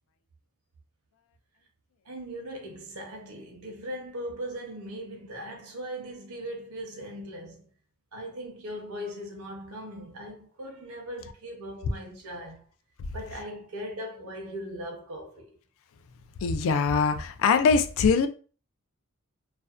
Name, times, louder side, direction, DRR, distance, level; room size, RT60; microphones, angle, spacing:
voice 1, 2.0-7.7 8.1-12.6 13.1-15.6, equal, 75° right, 0.8 m, -39 dB
voice 2, 16.4-18.3, left 5 dB, 65° left, 0.3 m, -22 dB
2.5 x 2.1 x 2.3 m
head